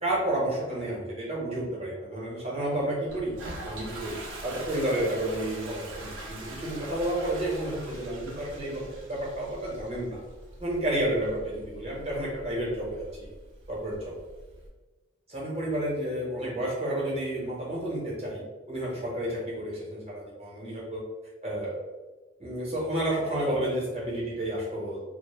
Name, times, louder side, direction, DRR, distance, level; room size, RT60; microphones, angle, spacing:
voice 1, 0.0-3.3 3.6-10.2 10.6-13.1 13.7-14.1 15.3-21.0 21.4-21.7 22.4-25.0, right 1 dB, 30° right, -5 dB, 0.8 m, -31 dB
Toilet flush, 3.1-14.7, right 2 dB, 80° right, 0.5 m, -43 dB
2.0 x 2.0 x 3.1 m, 1.2 s
head